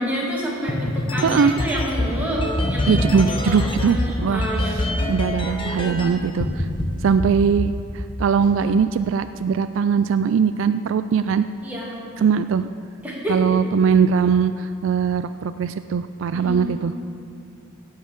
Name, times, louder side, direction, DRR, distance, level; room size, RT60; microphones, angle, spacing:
voice 1, 0.0-3.6 3.8-4.9 5.6-6.2 11.6-12.0 13.0-13.6 16.3-16.7, equal, 5° right, -5 dB, 2.2 m, -29 dB
sound 1, 0.7-6.1 6.4-6.8 7.2-8.6, left 1 dB, 25° left, 1.0 m, -24 dB
voice 2, 2.9-4.4 5.1-6.7 7.0-11.4 12.2-12.7 13.3-16.9, right 6 dB, 70° right, 11 dB, 0.3 m, -20 dB
16.5 x 5.7 x 7.3 m, 2.4 s
head